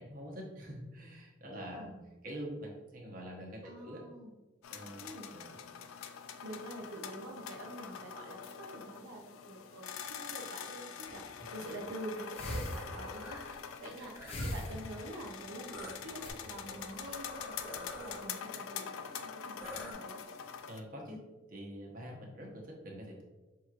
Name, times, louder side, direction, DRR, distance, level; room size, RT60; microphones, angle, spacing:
voice 1, 0.0-1.9 2.2-4.0 4.7-5.1 5.3-5.6 11.4-11.5 11.8-11.9 20.7-21.2 21.5-23.2, equal, 45° right, -1 dB, 0.9 m, -45 dB
voice 2, 1.5-2.0 3.6-4.3 5.0-5.3 6.4-20.2, right 1 dB, 80° right, 0 dB, 0.5 m, -47 dB
sound 1, 4.6-20.8, left 7 dB, 90° left, 0.4 m, -45 dB
sound 2, 11.0-11.4 12.3-13.3 14.3-15.3 15.9-16.3, equal, 30° left, 0.5 m, -40 dB
sound 3, 12.8-13.5 14.0-14.6 15.7-18.2 19.6-19.9, equal, 10° right, 0.7 m, -48 dB
5.6 x 2.9 x 2.4 m, 1.2 s
head